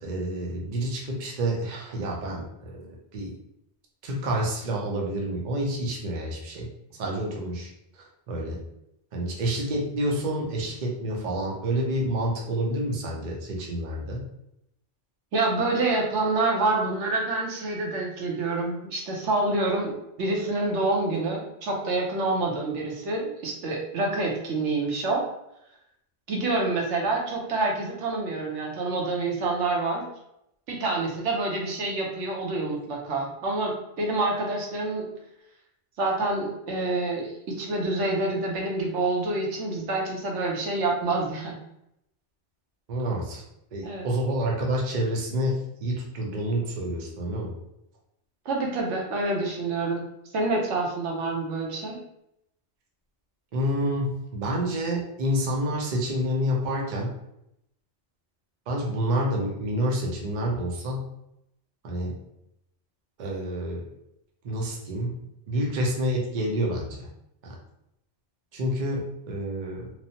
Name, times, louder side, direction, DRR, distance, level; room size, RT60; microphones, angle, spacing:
voice 1, 0.0-3.3 4.0-8.6 9.1-14.3 42.9-43.4 43.7-47.5 53.5-57.1 58.7-61.0 61.8-62.2 63.2-63.9 64.4-65.2 65.5-67.1 67.4-67.6 68.5-69.9, equal, 50° right, -1 dB, 0.6 m, -28 dB
voice 2, 15.3-25.2 26.3-30.0 30.7-35.1 36.0-41.6 43.8-44.1 48.5-50.0 50.3-52.0, right 2 dB, 80° right, -1 dB, 1.0 m, -27 dB
3.0 x 2.0 x 2.7 m, 0.81 s
omnidirectional pair, 1.2 m